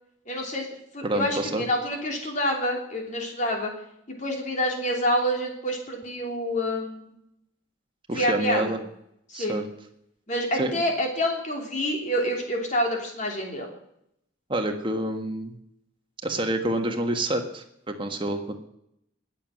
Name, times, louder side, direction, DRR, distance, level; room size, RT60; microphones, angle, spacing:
voice 1, 0.3-0.7 0.9-3.7 4.1-7.1 8.1-8.8 9.3-9.6 10.3-13.7, equal, 35° left, 1 dB, 3.0 m, -27 dB
voice 2, 1.0-1.6 8.1-8.8 9.3-9.7 10.6-10.7 14.5-15.6 16.2-18.5, right 1 dB, 25° right, 5 dB, 1.5 m, -28 dB
20.0 x 7.4 x 6.4 m, 0.76 s
head